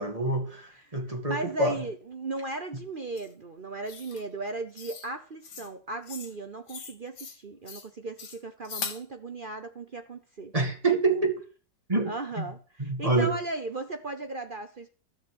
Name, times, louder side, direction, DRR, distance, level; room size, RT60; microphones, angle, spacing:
voice 1, 0.0-1.8 10.5-11.3 11.9-12.5 12.8-13.3, right 3 dB, 20° right, 2.1 m, -26 dB
voice 2, 1.3-10.5 11.1-11.3 12.1-14.9, right 3 dB, 45° right, 0.7 m, -37 dB
sound 1, 3.2-3.3 3.9-4.2 4.8-5.1 5.4-5.7 6.0-6.4 6.7-7.4 7.7-7.9 8.2-9.0, left 6 dB, 65° left, 1.8 m, -40 dB
12.5 x 6.7 x 7.8 m
omnidirectional pair, 2.0 m